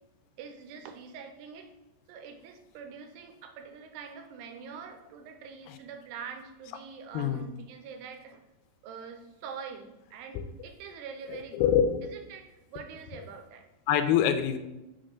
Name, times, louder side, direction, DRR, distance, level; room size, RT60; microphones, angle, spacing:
voice 1, 0.4-1.7 2.1-8.4 8.8-11.7 12.0-13.7, right 6 dB, 90° right, 5 dB, 2.8 m, -44 dB
voice 2, 11.3-12.0 13.9-14.6, left 9 dB, 85° left, 8 dB, 2.5 m, -25 dB
6.5 x 4.2 x 6.4 m, 1.0 s
omnidirectional pair, 4.7 m